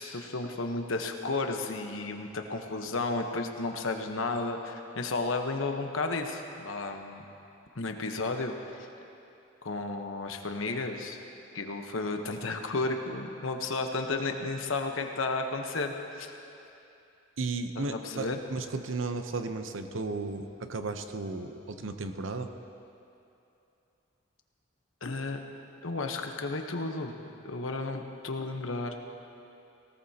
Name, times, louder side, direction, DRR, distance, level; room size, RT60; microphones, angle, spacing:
voice 1, 0.0-7.2 7.8-8.5 8.8-8.9 9.6-11.2 11.5-16.3 17.8-18.4 25.0-25.4 25.8-27.2 27.4-29.0, left 3 dB, 85° left, 4 dB, 1.1 m, -33 dB
voice 2, 17.4-22.5, right 3 dB, 75° right, 7 dB, 0.8 m, -34 dB
18.5 x 18.0 x 2.9 m, 2.7 s
head